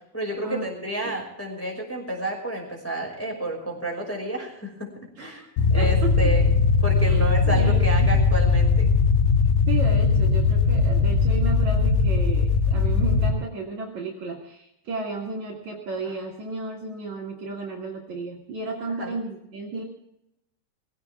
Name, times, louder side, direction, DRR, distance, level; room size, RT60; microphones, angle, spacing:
voice 1, 0.1-5.4 5.7-8.9 18.9-19.1, right 1 dB, 5° left, -2 dB, 5.3 m, -30 dB
voice 2, 5.2-5.5 5.8-6.3 7.0-8.1 9.7-19.8, right 3 dB, 55° right, -2 dB, 3.1 m, -33 dB
sound 1, 5.6-13.3, left 4 dB, 90° left, 3.1 m, -20 dB
20.5 x 16.5 x 3.5 m, 0.81 s
omnidirectional pair, 4.2 m